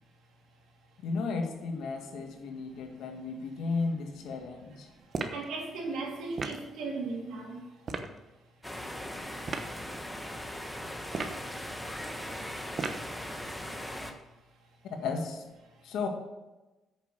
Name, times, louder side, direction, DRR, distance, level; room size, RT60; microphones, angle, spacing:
voice 1, 1.0-4.9 15.0-15.4 15.8-16.1, left 4 dB, 80° left, 3 dB, 1.8 m, -34 dB
sound 1, 5.1-5.5 6.4-6.7 7.8-8.1 9.4-9.7 11.1-11.5 12.8-13.1, right 4 dB, 45° right, 1.1 m, -35 dB
voice 2, 5.3-7.6, right 3 dB, 80° right, -1 dB, 3.0 m, -36 dB
sound 2, 8.6-14.1, left 1 dB, 5° left, 1.3 m, -39 dB
9.3 x 6.7 x 6.5 m, 1.1 s
cardioid pair, 90°, 0 cm